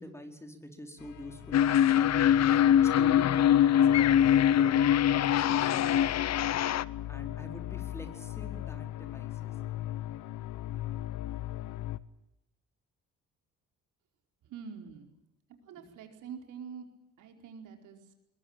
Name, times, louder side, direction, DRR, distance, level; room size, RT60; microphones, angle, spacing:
voice 1, 0.0-2.5 2.8-5.9 7.1-9.6 15.7-15.9, equal, 10° left, 5 dB, 4.6 m, -46 dB
sound 1, 1.0-12.0, left 14 dB, 80° left, 1.1 m, -40 dB
sound 2, 1.5-6.8, left 10 dB, 60° left, 0.8 m, -23 dB
voice 2, 14.5-15.1 15.7-16.9 17.2-18.1, right 7 dB, 85° right, 4 dB, 4.8 m, -45 dB
22.0 x 21.0 x 9.0 m, 0.88 s
cardioid pair, 90°, 30 cm